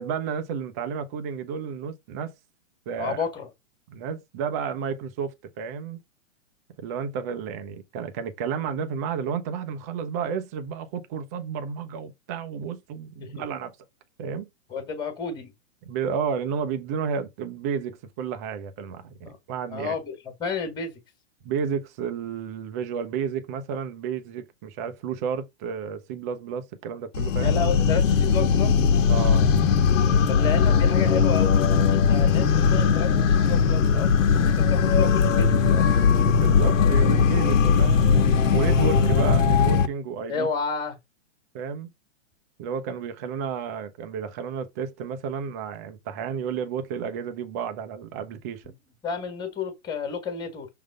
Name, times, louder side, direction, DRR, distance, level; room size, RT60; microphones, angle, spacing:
voice 1, 0.0-2.3 2.9-3.2 3.9-6.0 6.8-13.7 14.2-14.5 15.9-19.9 21.4-27.6 29.1-29.5 36.3-38.1 38.5-40.5 41.5-41.9 42.6-48.6, right 7 dB, 15° right, 0.4 m, -31 dB
voice 2, 3.0-3.5 13.2-13.4 14.7-15.5 19.2-19.4 19.7-20.9 27.4-28.8 30.3-34.1 34.4-35.9 40.3-40.9 48.6-48.7 49.0-50.7, left 5 dB, 10° left, 1.5 m, -31 dB
sound 1, 27.1-39.9, left 6 dB, 75° left, 1.5 m, -19 dB
6.4 x 3.6 x 4.9 m
hypercardioid pair, 150°, 39 cm